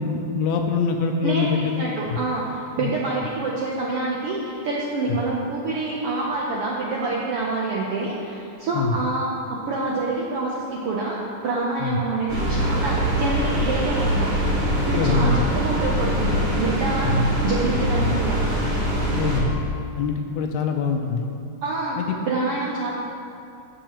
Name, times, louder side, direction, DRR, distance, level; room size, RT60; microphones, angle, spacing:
voice 1, 0.0-1.7 2.1-2.2 2.8-2.9 8.7-9.0 11.8-12.0 15.0-15.5 17.0-17.3 18.0-18.2 19.1-19.5 20.0-21.3 22.0-22.2, left 5 dB, 80° left, 4 dB, 1.8 m, -24 dB
voice 2, 1.2-14.3 14.8-17.1 17.4-18.4 21.6-22.0 22.2-22.9, right 3 dB, 75° right, -4 dB, 1.3 m, -27 dB
sound 1, 12.3-19.4, equal, 55° right, 3.0 m, -23 dB
11.5 x 7.5 x 3.0 m, 2.5 s
omnidirectional pair, 3.5 m